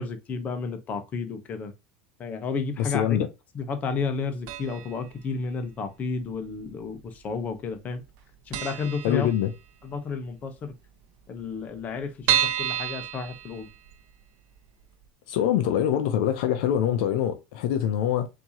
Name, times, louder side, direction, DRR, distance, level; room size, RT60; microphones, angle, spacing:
voice 1, 0.0-1.7 2.2-3.1 3.5-8.0 8.5-9.3 9.8-10.7 11.3-13.7, left 5 dB, 35° left, 0.9 m, -32 dB
voice 2, 2.8-3.3 9.0-9.5 15.3-18.3, left 10 dB, 75° left, 0.6 m, -24 dB
sound 1, 4.5-5.0 5.3-5.4 6.3-7.0 7.3-7.4 7.7-7.8 8.2-8.3 8.5-9.8 10.2-10.3 10.6-10.7 10.9-11.0 11.5-14.1 14.6-14.7 15.0-15.1, right 11 dB, 65° right, 0.8 m, -29 dB
4.4 x 2.8 x 2.8 m
supercardioid pair, 115°, 5 cm